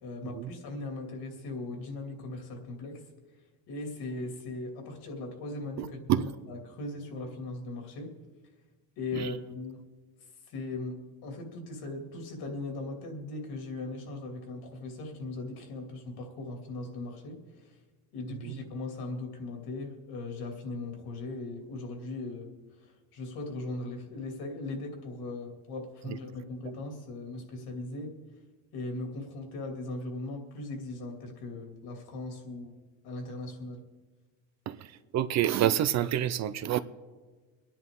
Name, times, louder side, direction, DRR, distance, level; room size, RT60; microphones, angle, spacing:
voice 1, 0.0-3.0 3.7-8.1 9.0-9.8 10.5-17.8 18.1-28.2 28.7-32.7 33.0-33.8, left 2 dB, 65° left, 2.7 m, -39 dB
voice 2, 5.8-6.2 9.1-9.3 18.4-18.6 34.7-36.8, right 12 dB, 45° right, 0.5 m, -28 dB
24.5 x 10.5 x 3.7 m
cardioid pair, 135°, 41 cm